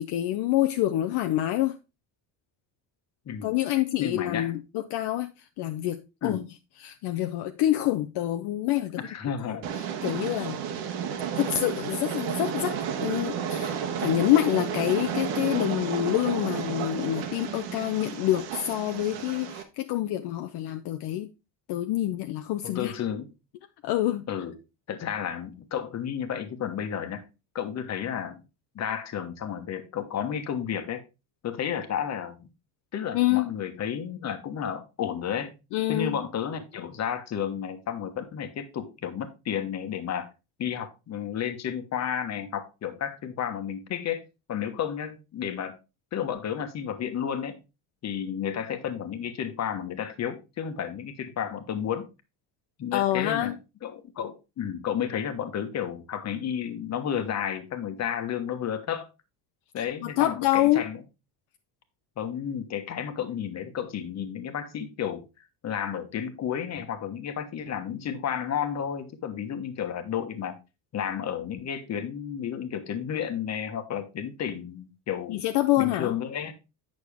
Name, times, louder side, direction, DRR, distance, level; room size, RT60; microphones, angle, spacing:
voice 1, 0.0-1.8 3.4-6.4 6.8-9.0 9.5-10.6 11.4-21.3 21.7-22.9 23.8-24.3 33.1-33.5 35.7-36.2 52.9-53.5 59.8-60.8 75.3-76.1, left 14 dB, 65° left, 0.7 m, -27 dB
voice 2, 4.0-4.5 6.2-6.4 8.9-9.7 22.6-23.3 24.3-24.5 24.9-27.2 27.5-28.4 28.7-31.0 31.4-32.5 32.9-35.5 35.9-40.3 40.6-44.2 44.5-45.8 46.1-47.6 48.0-52.1 52.8-53.5 53.8-59.1 59.7-61.0 62.2-65.2 65.6-70.6 70.9-75.4 75.8-76.5, left 8 dB, 35° left, 1.3 m, -32 dB
Train, 9.6-19.6, right 8 dB, 80° right, 1.5 m, -32 dB
8.4 x 6.4 x 3.5 m
cardioid pair, 140°, 43 cm